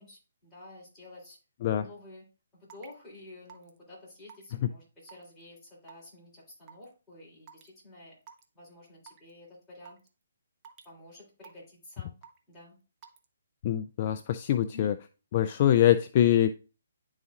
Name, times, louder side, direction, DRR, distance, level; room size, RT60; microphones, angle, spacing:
voice 1, 0.0-1.4 1.8-2.3 2.5-8.2 8.5-10.0 10.8-12.1 12.5-12.8 14.7-14.9, left 2 dB, 10° left, -7 dB, 3.5 m, -50 dB
Raindrop / Water tap faucet / Drip, 2.7-2.9 3.5-3.8 4.3-4.6 5.1-5.4 5.9-6.1 6.7-6.8 7.5-7.7 8.2-8.4 9.1-9.3 9.9-10.1 10.6-10.9 11.4-11.8 12.2-12.5 13.0-13.3, right 7 dB, 25° right, 0.8 m, -50 dB
voice 2, 13.6-15.0 15.3-16.5, left 11 dB, 40° left, 10 dB, 0.3 m, -24 dB
10.5 x 4.0 x 2.5 m, 0.33 s
hypercardioid pair, 150°, 0 cm